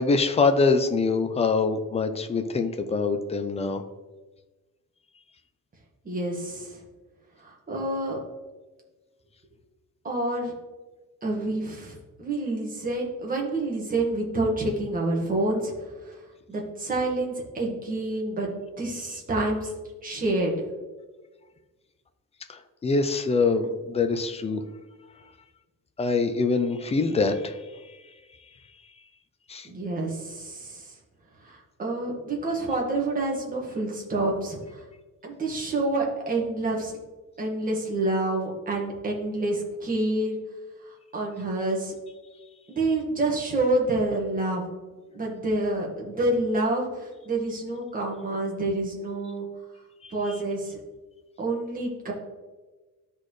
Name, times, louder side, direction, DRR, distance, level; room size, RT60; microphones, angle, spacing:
voice 1, 0.0-3.8 22.5-24.6 26.0-27.6 29.5-29.7 50.0-50.1, left 4 dB, 20° left, 8 dB, 0.5 m, -24 dB
voice 2, 6.0-6.8 7.4-8.2 10.0-10.5 11.2-15.7 16.5-19.7 20.0-20.6 29.6-30.9 31.4-34.8 35.2-36.9 37.4-40.4 41.1-41.9 42.7-44.6 45.1-49.5 50.1-50.8 51.4-52.1, right 2 dB, 25° right, -2 dB, 1.7 m, -28 dB
12.5 x 4.2 x 3.2 m, 1.3 s
cardioid pair, 145°, 32 cm